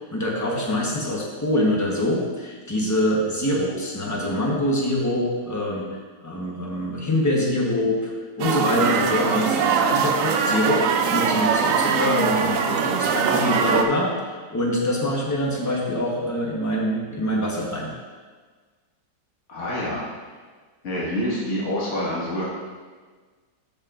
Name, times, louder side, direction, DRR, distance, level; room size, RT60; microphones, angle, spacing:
voice 1, 0.0-8.1 8.4-17.9, left 1 dB, 15° left, -2 dB, 0.8 m, -24 dB
sound 1, 8.4-13.8, right 6 dB, 90° right, 0.7 m, -22 dB
voice 2, 19.5-20.1 20.8-22.5, equal, 40° left, -7 dB, 1.9 m, -27 dB
13.0 x 5.2 x 2.5 m, 1.5 s
omnidirectional pair, 2.0 m